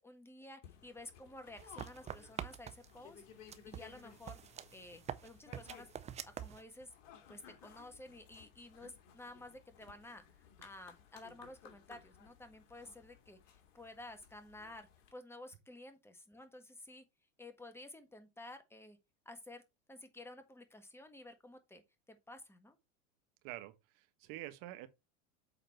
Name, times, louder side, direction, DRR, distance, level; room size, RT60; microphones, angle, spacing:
voice 1, 0.0-4.4 4.7-5.9 6.2-6.9 7.3-17.0 17.4-19.0 19.2-19.6 19.9-21.8 22.1-22.8, left 2 dB, 5° left, 1.5 m, -53 dB
sound 1, 0.6-15.1, left 8 dB, 60° left, 2.2 m, -59 dB
sound 2, 1.6-3.0 3.5-6.6, right 9 dB, 15° right, 0.5 m, -45 dB
voice 2, 23.4-24.9, right 16 dB, 50° right, 1.3 m, -47 dB
8.0 x 4.2 x 4.3 m
hypercardioid pair, 105°, 39 cm